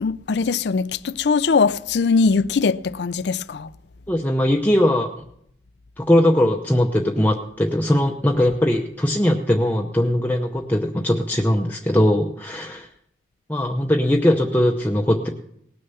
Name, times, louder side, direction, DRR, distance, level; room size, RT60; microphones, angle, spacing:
voice 1, 0.0-3.7, left 4 dB, 65° left, 0.4 m, -21 dB
voice 2, 4.1-5.1 6.0-12.9 13.5-15.3, left 1 dB, 10° left, 0.7 m, -20 dB
18.5 x 6.6 x 7.0 m
head